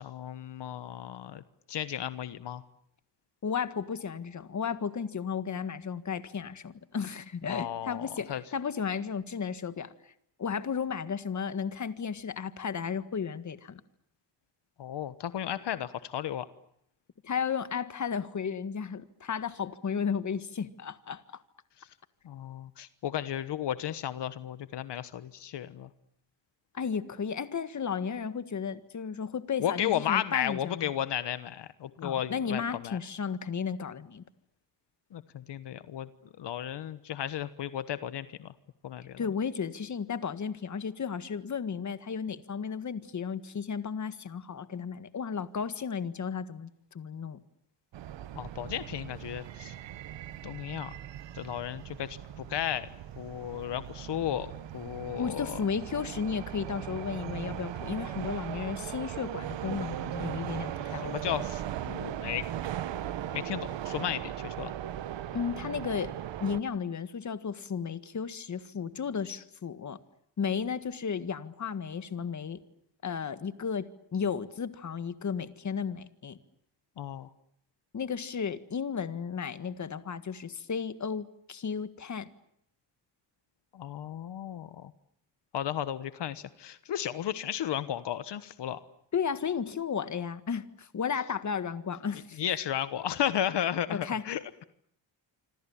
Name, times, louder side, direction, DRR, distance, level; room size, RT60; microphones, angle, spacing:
voice 1, 0.0-1.4 1.7-2.6 7.5-8.4 14.8-16.5 21.8-21.9 22.2-25.9 29.6-33.0 35.1-36.1 36.4-38.5 38.8-39.2 48.3-49.7 50.4-51.0 51.3-52.9 53.2-55.6 61.0-62.5 63.3-64.7 77.0-77.3 83.7-84.9 85.5-88.8 92.4-94.4, left 10 dB, 75° left, 13 dB, 1.3 m, -34 dB
voice 2, 3.4-9.9 10.4-13.8 17.2-21.4 26.7-30.9 32.0-34.2 39.2-47.4 55.2-61.1 65.3-66.1 66.4-70.0 70.4-72.6 73.0-76.4 77.9-82.3 89.1-92.4 93.9-94.2, left 6 dB, 40° left, 12 dB, 1.7 m, -34 dB
sound 1, 47.9-66.6, right 11 dB, 90° right, 1.4 m, -38 dB
26.5 x 26.0 x 7.2 m, 0.73 s
cardioid pair, 120°, 43 cm